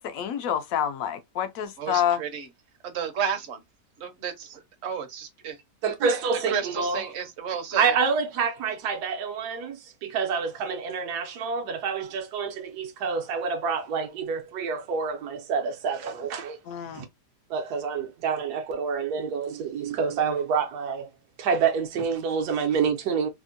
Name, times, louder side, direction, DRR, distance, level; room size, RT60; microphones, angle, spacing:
voice 1, 0.0-2.2 16.7-17.0, left 10 dB, 65° left, 0.9 m, -28 dB
voice 2, 1.8-2.5 2.8-3.6 4.0-5.6 6.5-7.9, right 7 dB, 50° right, 0.9 m, -32 dB
voice 3, 5.8-7.1 7.7-16.6 16.9-17.0 17.5-21.1 21.4-23.3, right 5 dB, 75° right, 1.2 m, -27 dB
3.4 x 2.1 x 2.5 m
omnidirectional pair, 1.8 m